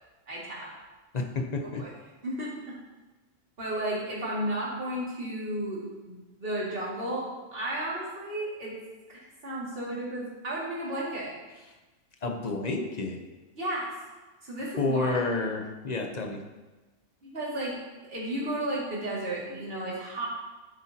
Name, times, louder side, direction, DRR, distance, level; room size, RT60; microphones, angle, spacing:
voice 1, 0.3-0.7 1.6-1.9 2.2-2.7 3.6-8.7 9.1-11.3 13.6-13.9 14.4-15.1 17.2-20.3, right 1 dB, 50° right, -6 dB, 2.6 m, -33 dB
voice 2, 1.1-1.9 12.2-13.2 14.8-16.4, left 3 dB, 35° left, 3 dB, 0.9 m, -30 dB
11.5 x 7.9 x 2.9 m, 1.2 s
omnidirectional pair, 1.3 m